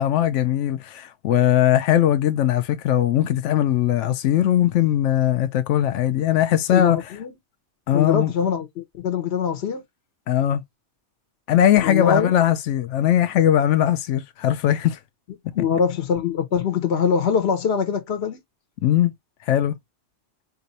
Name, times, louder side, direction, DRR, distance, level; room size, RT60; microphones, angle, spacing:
voice 1, 0.0-7.0 7.9-8.3 10.3-10.6 11.5-15.0 15.6-15.7 18.8-19.1 19.5-19.7, left 11 dB, 90° left, 0.9 m, -20 dB
voice 2, 6.7-7.3 7.9-9.8 11.8-12.3 15.5-18.4, left 6 dB, 65° left, 1.2 m, -23 dB
4.6 x 2.6 x 4.0 m
omnidirectional pair, 1.2 m